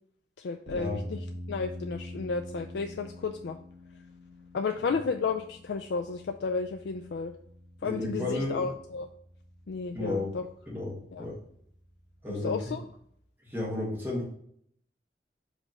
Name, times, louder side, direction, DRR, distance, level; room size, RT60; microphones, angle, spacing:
voice 1, 0.4-1.2 1.5-3.6 4.5-7.3 7.8-9.1 9.7-10.4 11.1-11.3 12.4-12.8, left 4 dB, 75° left, 5 dB, 0.4 m, -32 dB
sound 1, 0.7-13.2, left 1 dB, 45° right, 1.7 m, -46 dB
voice 2, 7.8-8.7 9.9-10.3 10.7-11.4 12.2-12.7 13.4-14.2, left 2 dB, 10° right, -4 dB, 1.7 m, -33 dB
5.1 x 3.5 x 5.3 m, 0.66 s
head